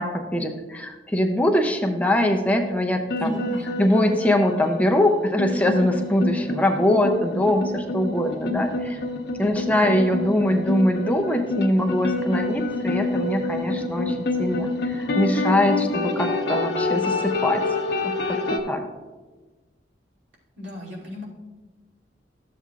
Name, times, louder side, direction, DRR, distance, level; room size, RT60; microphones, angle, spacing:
voice 1, 0.0-3.4 3.8-9.0 9.4-17.6 18.0-18.8, left 1 dB, 10° left, 3 dB, 0.5 m, -22 dB
sound 1, 3.1-18.6, left 3 dB, 65° left, 1.0 m, -27 dB
voice 2, 3.2-3.8 9.6-10.0 20.6-21.2, equal, 85° right, -5 dB, 2.7 m, -34 dB
12.5 x 7.3 x 2.4 m, 1.3 s
head